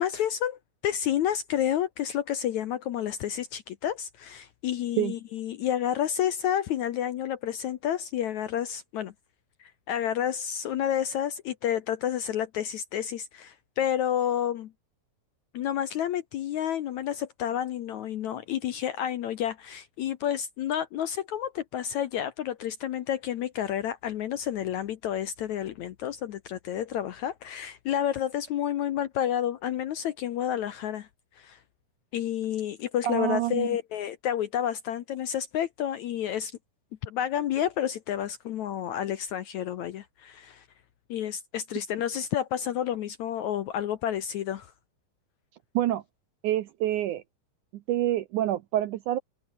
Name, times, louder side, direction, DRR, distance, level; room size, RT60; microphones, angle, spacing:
voice 1, 0.0-9.1 9.6-14.7 15.5-31.1 31.4-31.6 32.1-36.5 37.0-40.6 41.1-44.7, left 10 dB, 70° left, 1.9 m, -30 dB
voice 2, 33.0-33.8 45.7-46.0 46.4-47.2 47.9-49.2, right 13 dB, 75° right, 1.9 m, -27 dB
omnidirectional pair, 4.4 m